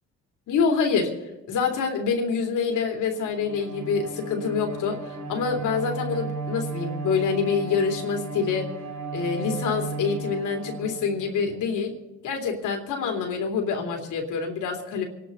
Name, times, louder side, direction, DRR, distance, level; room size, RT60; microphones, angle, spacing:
voice 1, 0.5-1.1 1.5-8.7 9.1-12.0 12.2-15.0, left 5 dB, 85° left, 2 dB, 3.3 m, -26 dB
Bowed string instrument, 3.1-11.6, right 4 dB, 65° right, 5.4 m, -35 dB
26.5 x 11.5 x 4.0 m, 1.1 s
cardioid pair, 90°, 30 cm